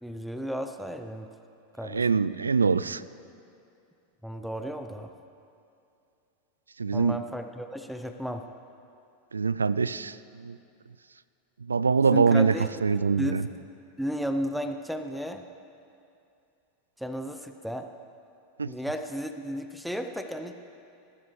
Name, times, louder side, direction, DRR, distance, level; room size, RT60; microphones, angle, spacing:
voice 1, 0.0-1.3 1.8-2.0 4.2-5.1 6.9-8.4 12.1-12.7 13.2-13.4 14.0-15.4 17.0-17.9 18.7-20.5, equal, ahead, 7 dB, 0.7 m, -33 dB
voice 2, 1.9-3.0 6.8-7.2 9.3-10.6 11.7-12.5 12.8-13.4 18.6-18.7, right 5 dB, 85° right, 17 dB, 0.3 m, -24 dB
20.5 x 13.0 x 3.3 m, 2.6 s
figure-of-eight pair, 90°, 0 cm